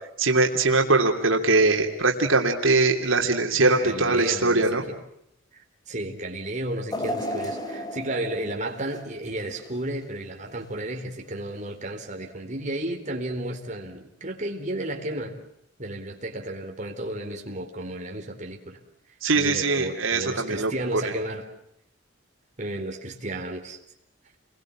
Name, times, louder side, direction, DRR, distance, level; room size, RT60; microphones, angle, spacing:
voice 1, 0.2-4.8 19.2-21.0, right 3 dB, 85° right, 3 dB, 3.0 m, -22 dB
voice 2, 3.5-5.0 5.5-15.4 15.8-18.8 19.3-21.5 22.6-23.8, right 1 dB, 35° right, 2 dB, 4.0 m, -33 dB
sound 1, 6.9-10.0 10.5-10.6 11.6-11.7, equal, 20° left, 3.0 m, -34 dB
29.5 x 22.5 x 7.4 m, 0.76 s
head